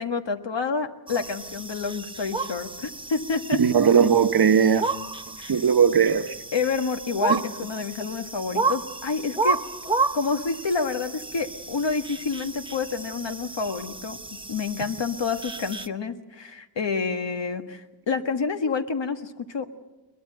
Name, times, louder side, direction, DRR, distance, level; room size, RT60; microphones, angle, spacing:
voice 1, 0.0-3.6 5.4-5.5 6.5-9.6 10.1-19.7, left 4 dB, 75° left, 1.6 m, -28 dB
sound 1, 1.1-15.9, right 4 dB, 10° right, 0.8 m, -32 dB
voice 2, 3.6-4.9 5.3-6.4 7.3-7.4, right 7 dB, 55° right, 1.0 m, -19 dB
22.0 x 20.5 x 7.8 m
cardioid pair, 65°, 44 cm